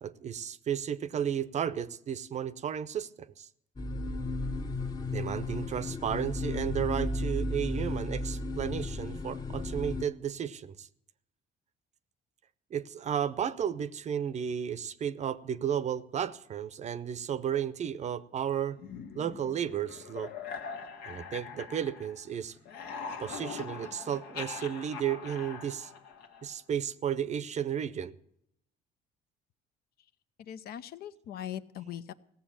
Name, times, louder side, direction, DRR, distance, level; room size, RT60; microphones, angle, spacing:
voice 1, 0.0-3.5 5.1-10.9 12.7-18.8 19.1-20.3 21.0-22.6 23.2-25.9 26.4-28.1, right 9 dB, 45° right, 0.7 m, -33 dB
sound 1, 3.8-10.0, left 2 dB, 20° left, 0.9 m, -34 dB
sound 2, 18.8-22.3 22.6-26.6, left 5 dB, 85° left, 1.7 m, -42 dB
voice 2, 30.4-32.1, left 10 dB, 65° left, 0.7 m, -40 dB
16.0 x 7.1 x 8.7 m
cardioid pair, 110°, 17 cm